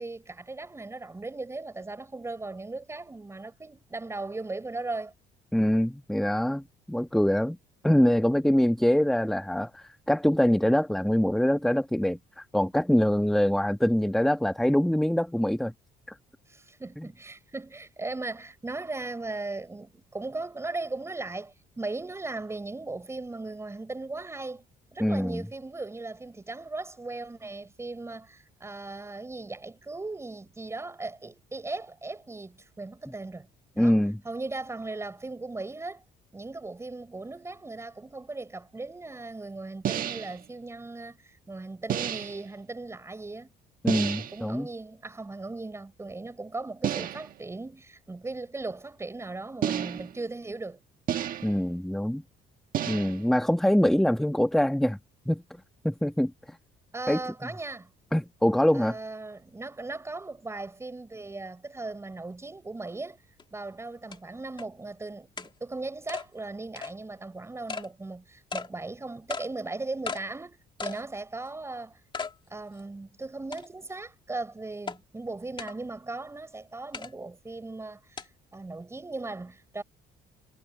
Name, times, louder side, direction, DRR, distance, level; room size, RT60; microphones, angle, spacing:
voice 1, 0.0-5.1 16.5-24.7 24.9-33.5 33.7-36.0 36.3-43.5 43.9-50.8 56.9-57.9 58.7-63.2 63.5-72.0 72.5-79.8, right 3 dB, 15° right, 5.3 m, -38 dB
voice 2, 5.5-7.6 7.8-15.7 16.1-16.2 17.0-17.1 25.0-25.4 33.8-34.2 43.8-44.7 51.4-52.2 52.9-55.0 55.3-55.4 55.8-56.3 57.1-57.2 58.1-59.0, equal, ahead, 1.4 m, -24 dB
sound 1, 39.8-40.4 41.9-42.5 43.9-44.4 46.8-47.4 49.6-50.2 51.1-51.7 52.7-53.3, right 10 dB, 55° right, 1.4 m, -31 dB
sound 2, 63.4-63.5 64.1-64.2 64.6-64.7 65.4-65.5 66.1-66.3 66.8-66.9 67.7-67.9 68.5-68.7 69.3-69.5 70.1-70.2 70.8-71.0 71.5-71.6 72.1-72.3 72.8-72.9 73.5-73.9 74.9-75.0 75.6-75.7 76.9-77.1 78.2-78.3, left 5 dB, 30° left, 2.8 m, -35 dB
cardioid pair, 110°, 17 cm